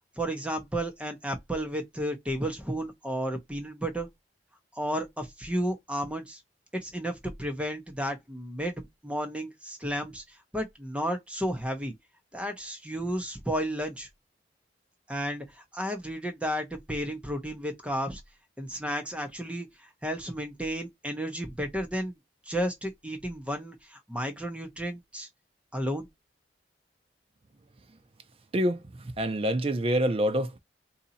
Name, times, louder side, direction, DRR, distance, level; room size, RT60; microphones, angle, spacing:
voice 1, 0.2-4.1 4.8-6.4 6.7-10.2 10.5-11.9 12.3-14.1 15.1-18.2 18.6-22.2 22.5-25.3 25.7-26.1, equal, 5° right, 0.8 m, -32 dB
voice 2, 29.2-30.6, equal, 30° right, 0.5 m, -26 dB
2.8 x 2.7 x 4.0 m
head